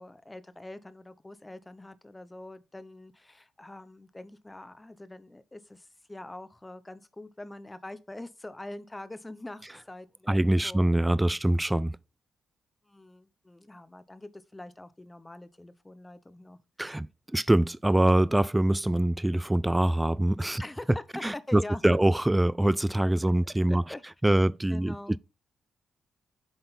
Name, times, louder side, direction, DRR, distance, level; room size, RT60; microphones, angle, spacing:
voice 1, 0.0-10.8 12.9-16.6 20.6-22.0 23.2-23.3 23.7-25.2, left 1 dB, 15° left, 0.7 m, -44 dB
voice 2, 10.3-12.0 16.8-20.6 21.2-23.8 24.2-25.2, right 1 dB, 10° right, 0.3 m, -24 dB
8.0 x 3.8 x 4.1 m
cardioid pair, 65°, 0 cm